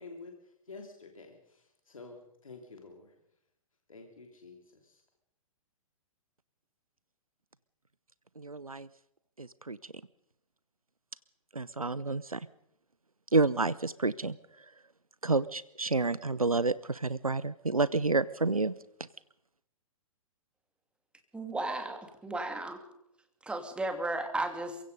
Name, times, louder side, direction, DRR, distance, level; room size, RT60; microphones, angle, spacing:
voice 1, 0.0-3.1 3.9-5.0, left 3 dB, 70° left, 3 dB, 3.1 m, -50 dB
voice 2, 8.4-8.9 9.4-9.8 11.6-12.4 13.3-14.4 15.2-18.7, right 3 dB, 90° right, 19 dB, 0.6 m, -29 dB
voice 3, 21.3-22.8 23.4-24.8, right 2 dB, 5° right, 7 dB, 2.6 m, -34 dB
29.0 x 16.5 x 5.3 m, 0.79 s
figure-of-eight pair, 115°, 18 cm